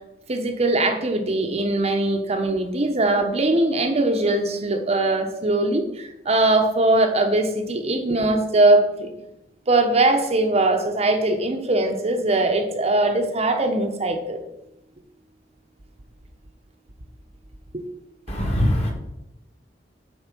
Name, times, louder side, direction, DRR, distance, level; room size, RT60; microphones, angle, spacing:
voice 1, 0.3-9.1 9.7-14.4 17.7-17.8, right 2 dB, 35° right, 5 dB, 0.8 m, -21 dB
voice 2, 18.3-18.9, left 1 dB, 35° left, 1 dB, 2.0 m, -21 dB
8.0 x 4.6 x 6.0 m, 0.89 s
head